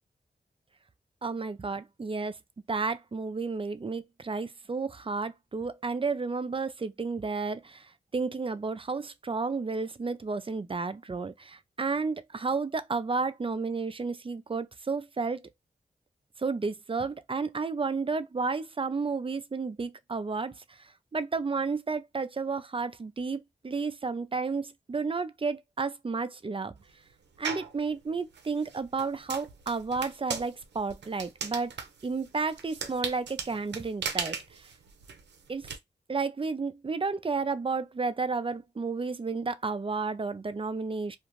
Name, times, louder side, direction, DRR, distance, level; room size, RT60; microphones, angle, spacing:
voice 1, 1.2-2.4 2.7-15.5 16.4-26.7 27.4-31.7 32.0-34.7 35.5-35.7 36.1-41.2, right 4 dB, 30° right, 0.5 m, -32 dB
sound 1, 27.4-27.8 28.3-35.8, right 6 dB, 80° right, 0.6 m, -37 dB
2.5 x 2.4 x 3.0 m
cardioid pair, 45°, 18 cm